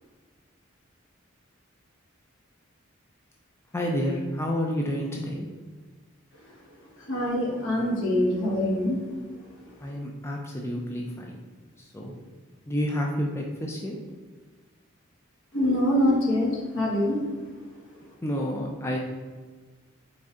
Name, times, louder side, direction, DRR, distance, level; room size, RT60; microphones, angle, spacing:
voice 1, 3.7-5.5 9.8-11.4 11.9-12.1 12.7-14.0 18.2-19.0, equal, 10° left, -1 dB, 0.3 m, -29 dB
voice 2, 7.1-9.0 15.5-16.5 16.7-17.2, left 1 dB, 65° left, -3 dB, 1.3 m, -24 dB
4.2 x 4.0 x 2.4 m, 1.4 s
head